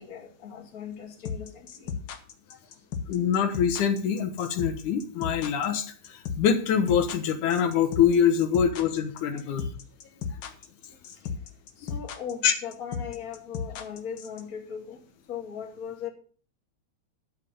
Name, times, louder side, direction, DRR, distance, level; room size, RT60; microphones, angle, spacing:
voice 1, 0.0-2.0 11.2-11.3 11.8-15.0 15.3-16.1, left 7 dB, 30° left, 2.3 m, -39 dB
sound 1, 1.2-14.4, left 6 dB, 60° left, 1.2 m, -34 dB
voice 2, 3.1-9.7 11.8-11.9 12.4-12.5, left 8 dB, 85° left, 2.7 m, -24 dB
12.5 x 7.8 x 5.5 m
omnidirectional pair, 3.4 m